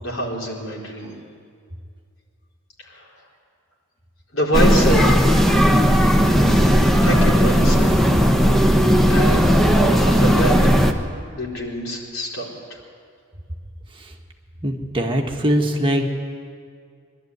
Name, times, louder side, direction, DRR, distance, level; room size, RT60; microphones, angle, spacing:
voice 1, 0.0-1.1 2.9-3.0 4.3-5.3 7.0-8.0 9.1-10.7 11.3-12.8, equal, 80° left, -3 dB, 4.3 m, -25 dB
sound 1, 4.5-10.9, equal, ahead, 1.1 m, -16 dB
voice 2, 14.6-16.1, equal, 25° right, 2 dB, 1.6 m, -21 dB
22.5 x 12.5 x 9.5 m, 2.1 s
head